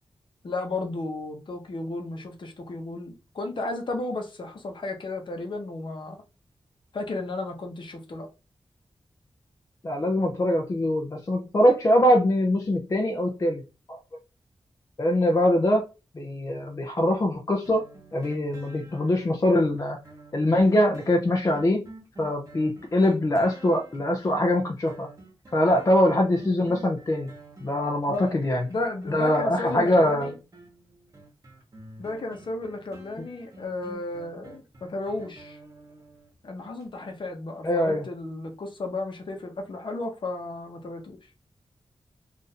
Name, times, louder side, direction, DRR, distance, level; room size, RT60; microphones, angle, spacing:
voice 1, 0.4-6.2 6.9-8.3 28.1-28.3 28.7-30.4 32.0-35.6 36.4-41.2, left 2 dB, 60° left, 0.8 m, -33 dB
voice 2, 9.8-13.6 13.9-14.0 15.0-15.8 16.1-20.0 20.3-21.8 22.2-25.1 25.5-27.3 27.6-28.7 29.1-30.3 33.2-33.3 37.6-38.0, left 1 dB, 35° left, 0.5 m, -23 dB
sound 1, 17.6-36.3 36.8-36.9, right 1 dB, 35° right, 1.0 m, -48 dB
2.5 x 2.5 x 4.0 m
wide cardioid pair, 140°, 10 cm